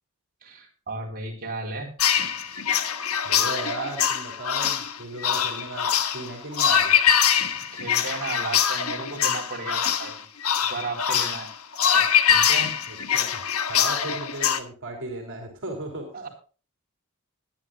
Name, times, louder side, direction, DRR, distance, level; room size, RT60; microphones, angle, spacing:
voice 1, 0.4-1.9 7.5-10.2 10.6-11.5 11.9-12.7 13.8-14.0 16.1-16.3, right 3 dB, 45° right, -1 dB, 4.3 m, -35 dB
sound 1, 2.0-14.6, left 8 dB, 75° left, 1.3 m, -23 dB
voice 2, 3.2-6.9 12.9-16.3, right 2 dB, 60° right, 2 dB, 3.6 m, -36 dB
21.5 x 11.0 x 2.5 m, 0.37 s
head